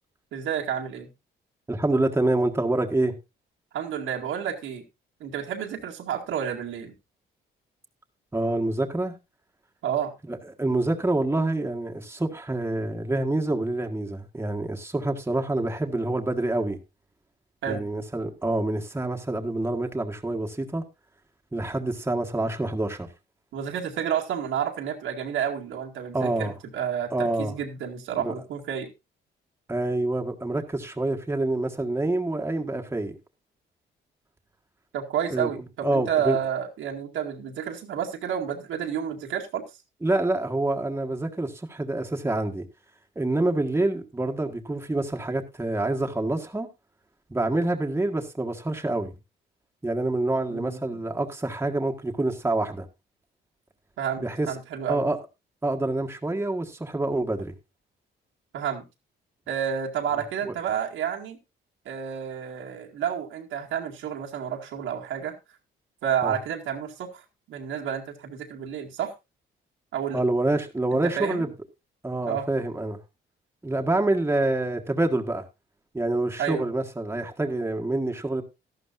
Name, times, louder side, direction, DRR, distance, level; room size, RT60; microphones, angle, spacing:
voice 1, 0.3-1.1 3.7-4.8 5.2-6.9 9.8-10.1 17.6-17.8 23.5-28.9 34.9-39.6 50.5-51.0 54.0-55.0 58.5-58.8 59.5-61.4 61.9-65.4 66.0-69.1 69.9-70.2 70.9-71.5 72.3-72.5 76.4-76.7, right 8 dB, 80° right, 2.1 m, -30 dB
voice 2, 1.7-3.1 8.3-9.2 10.3-16.8 17.7-20.8 21.5-23.1 26.1-26.5 27.1-27.5 28.2-28.3 29.7-33.2 35.3-35.5 35.8-36.4 40.0-42.6 43.1-46.7 47.3-49.1 49.8-52.9 54.2-54.5 54.9-55.2 55.6-57.5 60.5-60.6 66.2-66.3 70.1-71.5 72.0-73.0 73.6-75.4 75.9-78.4, right 2 dB, 10° right, 1.5 m, -26 dB
13.0 x 11.5 x 2.6 m
cardioid pair, 90°, 20 cm